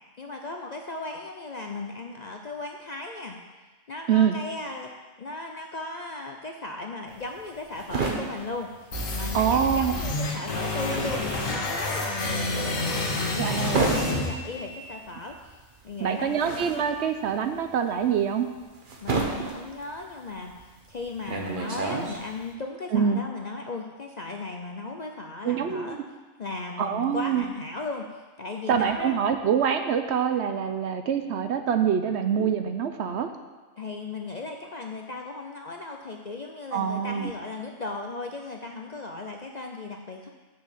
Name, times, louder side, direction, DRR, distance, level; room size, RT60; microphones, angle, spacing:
voice 1, 0.2-3.4 3.9-15.6 15.8-16.4 19.0-26.0 26.4-29.1 33.8-40.3, left 3 dB, 50° left, 2 dB, 0.5 m, -37 dB
sound 1, 7.1-9.6 9.9-22.5, right 4 dB, 40° right, 1.1 m, -32 dB
sound 2, 8.9-14.9, left 2 dB, 80° left, 1.7 m, -29 dB
voice 2, 9.3-9.9 13.4-13.9 16.0-18.5 22.9-23.2 25.4-26.0 26.8-27.4 28.7-33.3 36.7-37.3, right 8 dB, 65° right, 7 dB, 0.8 m, -25 dB
6.8 x 6.2 x 7.3 m, 1.3 s
omnidirectional pair, 1.4 m